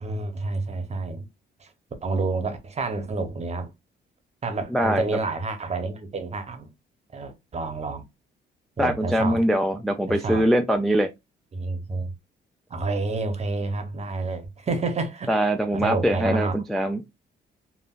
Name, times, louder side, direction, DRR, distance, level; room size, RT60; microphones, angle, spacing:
voice 1, 0.0-1.3 1.6-1.7 2.0-3.7 4.4-6.7 7.1-8.0 8.8-9.4 10.1-10.5 11.5-12.1 12.7-15.4 15.7-16.5, right 3 dB, 35° right, 0.8 m, -29 dB
voice 2, 4.7-5.0 8.8-11.1 15.3-17.0, right 1 dB, ahead, 0.3 m, -22 dB
3.6 x 2.4 x 2.4 m
cardioid pair, 90°, 20 cm